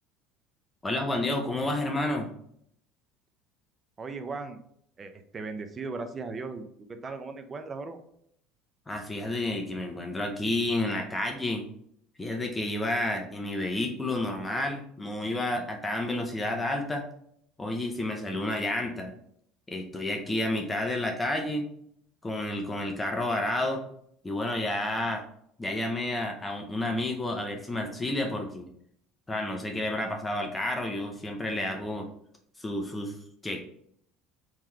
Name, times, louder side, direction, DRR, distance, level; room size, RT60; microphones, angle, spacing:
voice 1, 0.8-2.3 8.9-11.6 12.2-17.0 17.6-19.1 19.7-21.7 22.2-23.8 24.2-25.2 25.6-28.7 29.3-32.1 32.6-33.2 33.4-33.6, left 1 dB, 15° left, 2 dB, 0.6 m, -30 dB
voice 2, 4.0-4.6 5.0-8.0, right 4 dB, 25° right, 7 dB, 0.5 m, -37 dB
3.7 x 3.1 x 4.4 m, 0.68 s
supercardioid pair, 115°, 0 cm